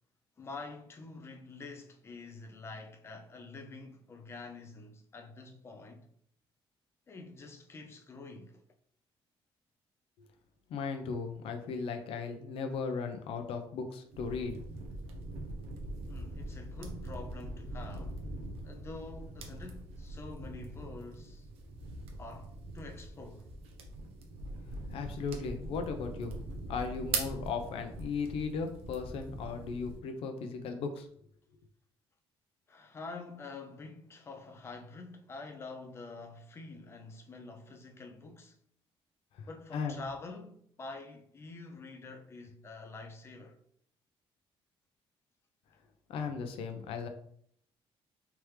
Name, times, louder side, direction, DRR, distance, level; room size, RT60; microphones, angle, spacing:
voice 1, 0.4-6.1 7.1-8.6 16.1-18.3 18.6-21.5 22.2-23.5 32.7-38.6 39.4-43.6, left 3 dB, 25° left, 0.5 m, -47 dB
voice 2, 10.7-14.6 24.9-26.4 26.7-31.1 39.4-40.0 46.1-47.1, left 5 dB, 75° left, 0.6 m, -37 dB
sound 1, 14.1-30.0, right 2 dB, 90° right, 0.7 m, -42 dB
3.4 x 3.0 x 3.2 m
cardioid pair, 145°, 10 cm